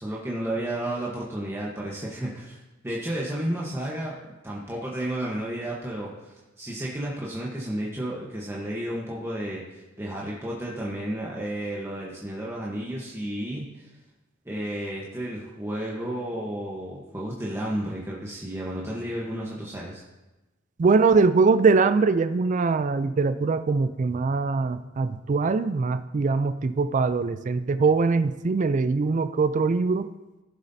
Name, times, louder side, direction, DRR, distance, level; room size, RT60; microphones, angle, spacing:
voice 1, 0.0-2.6 2.8-4.1 4.4-13.9 14.4-20.0, right 1 dB, 15° right, -5 dB, 1.0 m, -32 dB
voice 2, 20.8-30.1, right 4 dB, 40° right, 11 dB, 0.3 m, -22 dB
15.5 x 7.3 x 2.7 m, 1.1 s
head